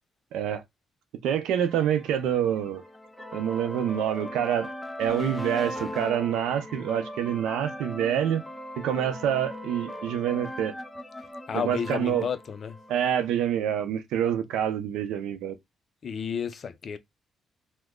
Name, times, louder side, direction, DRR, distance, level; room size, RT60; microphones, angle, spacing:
voice 1, 0.3-0.6 1.2-2.8 3.3-4.7 5.0-8.4 8.8-10.7 11.5-12.2 12.9-15.6, right 9 dB, 90° right, 0.6 m, -27 dB
sound 1, 1.6-13.4, left 1 dB, 5° left, 0.6 m, -39 dB
sound 2, 9.9-11.3, right 1 dB, 40° right, 0.9 m, -51 dB
voice 2, 11.5-12.8 16.0-17.0, left 7 dB, 50° left, 0.5 m, -31 dB
3.0 x 2.2 x 3.7 m
cardioid pair, 90°, 0 cm